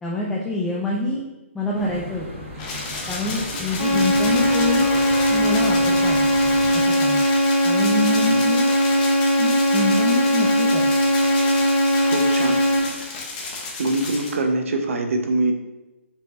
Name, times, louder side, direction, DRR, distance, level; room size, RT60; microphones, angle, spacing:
voice 1, 0.0-1.2 1.5-2.3 3.1-4.9 5.3-6.2 6.7-7.2 7.6-8.7 9.4-10.8, left 2 dB, 5° left, -4 dB, 0.4 m, -26 dB
sound 1, 1.7-6.8, equal, 25° right, 1.3 m, -35 dB
sound 2, 2.6-14.3, left 3 dB, 35° left, 0.9 m, -32 dB
sound 3, 3.8-12.8, equal, 70° left, 1.2 m, -19 dB
voice 2, 12.0-12.6 13.8-15.5, right 2 dB, 70° right, 4 dB, 0.6 m, -23 dB
5.4 x 3.0 x 2.6 m, 1.1 s
hypercardioid pair, 150°, 7 cm